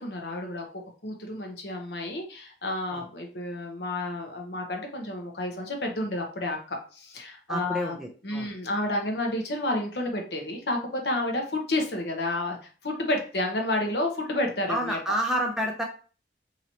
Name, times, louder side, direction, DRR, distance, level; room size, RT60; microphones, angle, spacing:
voice 1, 0.0-8.0 8.2-12.6 12.8-15.2, left 1 dB, 60° left, 2 dB, 0.9 m, -30 dB
voice 2, 7.5-8.5 14.7-15.8, equal, 5° right, 0 dB, 0.5 m, -29 dB
3.0 x 2.9 x 4.0 m, 0.38 s
head